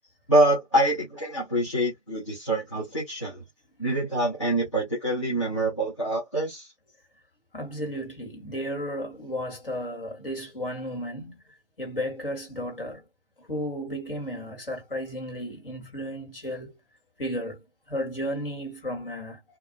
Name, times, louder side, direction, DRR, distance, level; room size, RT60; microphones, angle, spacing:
voice 1, 0.3-3.4 3.8-6.7, right 1 dB, 25° left, 0.6 m, -25 dB
voice 2, 7.5-11.4 11.8-13.0 13.4-16.8 17.2-19.4, equal, 50° left, 1.4 m, -33 dB
2.3 x 2.0 x 2.7 m
figure-of-eight pair, 155°, 35 cm